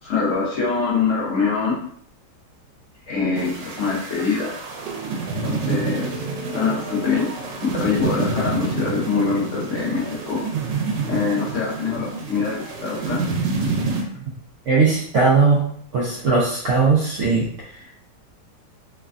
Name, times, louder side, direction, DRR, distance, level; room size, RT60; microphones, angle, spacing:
voice 1, 0.0-1.8 3.1-4.5 5.4-6.2 6.5-7.3 7.6-10.4 11.1-13.2, left 5 dB, 60° left, -4 dB, 0.8 m, -24 dB
sound 1, 3.4-14.0, right 4 dB, 90° right, 1.3 m, -28 dB
voice 2, 14.7-15.6 15.9-17.5, right 4 dB, 70° right, -5 dB, 0.7 m, -18 dB
3.2 x 2.2 x 2.4 m, 0.62 s
omnidirectional pair, 1.9 m